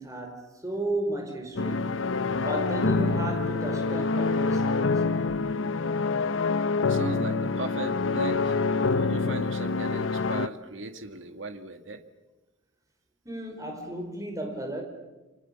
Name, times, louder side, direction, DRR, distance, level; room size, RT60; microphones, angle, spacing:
voice 1, 0.0-1.9 2.4-5.0 13.3-14.8, right 1 dB, 15° right, 5.3 m, -34 dB
sound 1, 1.6-10.5, left 3 dB, 75° left, 0.9 m, -26 dB
voice 2, 6.9-8.6 9.0-12.0, right 2 dB, 70° right, 2.1 m, -37 dB
29.5 x 25.5 x 7.2 m
head